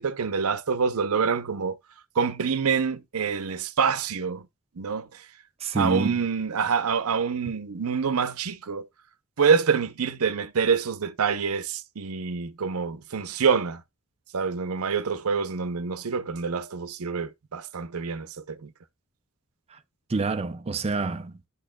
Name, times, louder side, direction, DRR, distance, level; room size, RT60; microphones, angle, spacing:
voice 1, 0.0-1.8 2.2-4.4 4.8-5.2 5.7-8.9 9.4-13.8 14.3-18.7, right 6 dB, 85° right, 0.7 m, -26 dB
voice 2, 5.6-6.3 19.7-19.8 20.1-21.4, right 3 dB, 30° right, 0.4 m, -27 dB
11.0 x 4.3 x 2.3 m
head